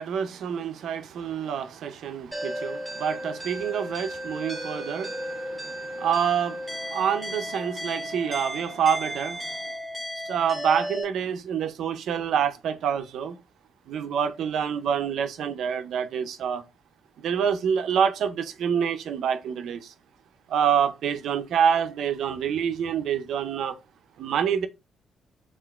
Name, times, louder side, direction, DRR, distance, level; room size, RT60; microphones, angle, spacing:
voice 1, 0.0-9.5 10.3-13.4 13.9-16.6 17.2-19.9 20.5-23.8 24.2-24.7, right 8 dB, 75° right, 0.5 m, -27 dB
sound 1, 2.3-11.0, equal, 15° right, 1.8 m, -34 dB
5.7 x 2.5 x 2.3 m
cardioid pair, 90°, 0 cm